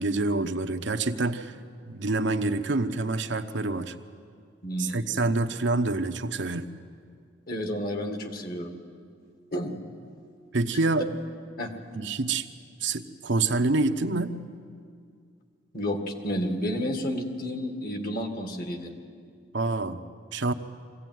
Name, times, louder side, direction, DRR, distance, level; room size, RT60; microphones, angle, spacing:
voice 1, 0.0-1.5 1.9-3.9 4.8-6.7 10.5-11.0 11.9-12.5 12.8-14.3 19.5-20.0 20.3-20.5, right 3 dB, 70° right, 7 dB, 0.9 m, -27 dB
voice 2, 4.6-5.0 7.5-8.7 9.5-9.8 11.6-11.7 15.7-18.9, equal, 50° left, 5 dB, 1.9 m, -31 dB
22.5 x 16.0 x 9.3 m, 2.2 s
head